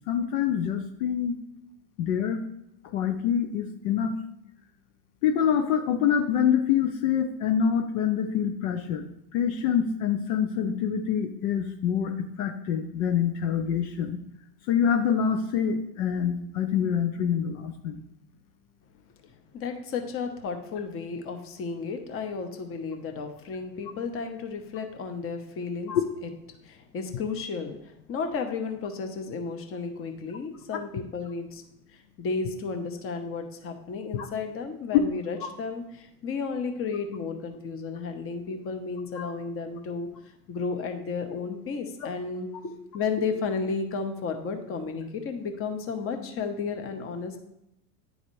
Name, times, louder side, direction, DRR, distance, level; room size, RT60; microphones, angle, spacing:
voice 1, 0.1-1.4 2.0-2.4 2.8-4.1 5.2-14.2 14.7-18.0 25.9-26.0 34.2-34.3 35.4-35.5 39.2-39.3, left 8 dB, 60° left, 6 dB, 0.7 m, -26 dB
voice 2, 19.5-25.9 26.6-31.6 32.2-40.1 40.5-47.4, left 5 dB, 30° left, 5 dB, 0.9 m, -33 dB
10.0 x 4.0 x 3.1 m, 0.82 s
hypercardioid pair, 100°, 45 cm